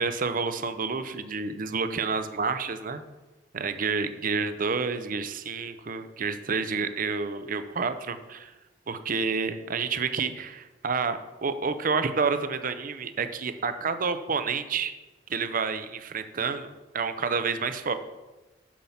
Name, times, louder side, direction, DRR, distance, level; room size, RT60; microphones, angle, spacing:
voice 1, 0.0-3.0 3.5-8.5 8.9-14.9 15.3-17.9, right 5 dB, 50° right, 10 dB, 0.6 m, -29 dB
7.4 x 7.1 x 5.6 m, 1.1 s
head